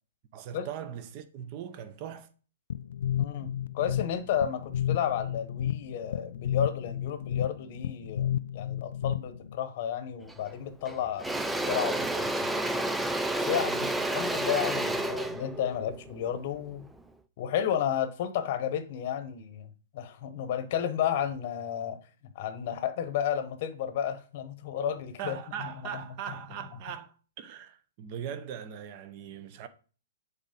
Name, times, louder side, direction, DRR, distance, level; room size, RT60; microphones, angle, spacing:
voice 1, 0.3-2.3 25.2-29.7, right 9 dB, 30° right, 0.7 m, -40 dB
sound 1, 2.7-9.6, left 10 dB, 70° left, 0.3 m, -32 dB
voice 2, 3.1-3.5 3.7-12.5 13.4-16.9 17.4-22.0 22.3-25.4 25.6-26.0, left 9 dB, 35° left, 0.9 m, -32 dB
Engine / Drill, 10.3-10.5 10.8-17.0, right 1 dB, 5° right, 0.3 m, -30 dB
7.9 x 4.0 x 5.2 m
hypercardioid pair, 170°, 0 cm